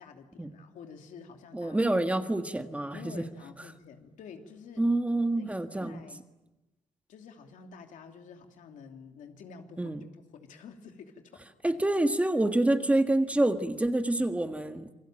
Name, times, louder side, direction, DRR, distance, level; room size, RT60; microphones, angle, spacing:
voice 1, 0.0-1.8 2.9-4.9 5.4-6.2 7.1-10.0 10.3-11.7, left 6 dB, 90° left, 4 dB, 3.0 m, -49 dB
voice 2, 1.5-3.2 4.8-6.0 9.8-10.0 11.6-14.9, right 1 dB, 10° right, 7 dB, 1.7 m, -27 dB
28.0 x 22.5 x 9.1 m, 1.0 s
cardioid pair, 120°, 13 cm